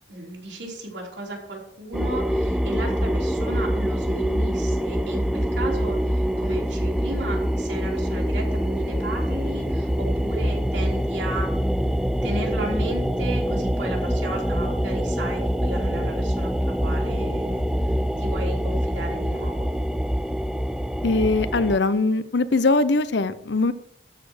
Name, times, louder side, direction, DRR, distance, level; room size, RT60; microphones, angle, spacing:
voice 1, 0.1-11.5 12.2-19.7, right 2 dB, 80° right, -1 dB, 3.4 m, -34 dB
sound 1, 1.9-21.8, equal, 5° right, 0.4 m, -25 dB
voice 2, 21.0-23.7, left 3 dB, 70° left, 14 dB, 0.7 m, -21 dB
13.0 x 5.1 x 6.3 m, 0.73 s
head